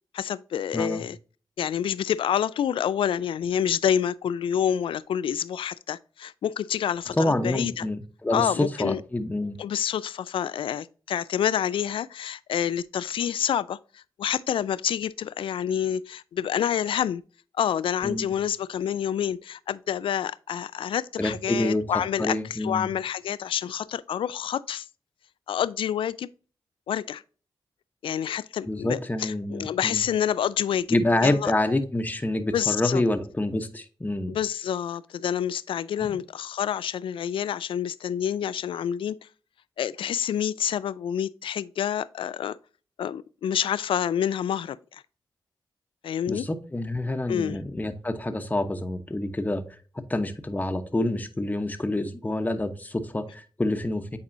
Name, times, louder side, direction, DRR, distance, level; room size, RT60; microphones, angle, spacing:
voice 1, 0.1-1.2 1.6-7.9 8.3-9.0 9.6-17.2 17.6-24.9 25.5-26.3 26.9-27.2 28.0-30.9 31.2-31.5 32.5-33.0 34.3-39.2 39.8-42.6 43.0-45.0 46.0-46.4 47.3-47.6, left 9 dB, 80° left, 0.4 m, -28 dB
voice 2, 0.7-1.1 7.1-9.6 18.0-18.3 21.2-21.9 22.2-22.9 28.7-30.0 30.9-34.4 36.0-36.2 46.3-49.8 50.1-54.2, left 1 dB, 20° left, 0.9 m, -27 dB
8.7 x 4.2 x 2.6 m
cardioid pair, 50°, 9 cm